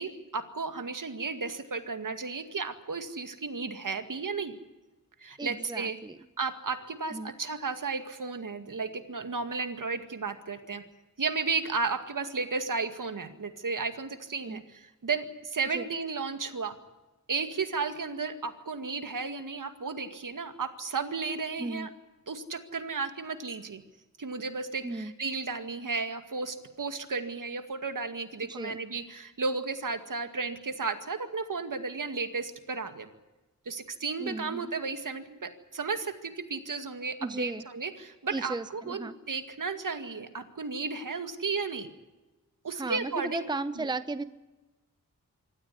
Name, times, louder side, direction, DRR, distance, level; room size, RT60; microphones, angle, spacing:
voice 1, 0.0-4.6 5.2-6.0 6.4-10.8 11.2-16.8 17.3-21.9 22.3-23.8 24.2-33.1 33.7-41.9 42.6-43.9, right 4 dB, 65° right, 8 dB, 2.2 m, -34 dB
voice 2, 5.4-6.2 7.1-7.3 14.4-14.6 15.7-15.9 21.6-21.9 24.8-25.1 28.4-28.8 34.2-34.7 37.2-37.6 38.3-39.1 42.8-44.2, right 3 dB, 10° right, 12 dB, 0.7 m, -35 dB
25.5 x 14.5 x 9.8 m, 1.1 s
wide cardioid pair, 115°, 35 cm